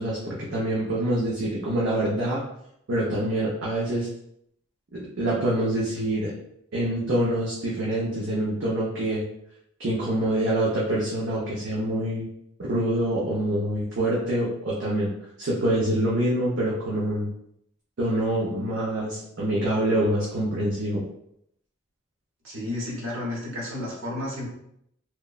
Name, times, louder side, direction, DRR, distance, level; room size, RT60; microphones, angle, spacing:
voice 1, 0.0-2.4 2.9-4.1 4.9-6.3 6.7-9.2 9.8-12.3 12.7-15.1 15.4-17.3 18.0-21.0, right 1 dB, 60° right, -6 dB, 0.5 m, -25 dB
voice 2, 22.4-24.5, left 1 dB, 80° right, -4 dB, 0.9 m, -32 dB
2.9 x 2.1 x 2.3 m, 0.74 s
head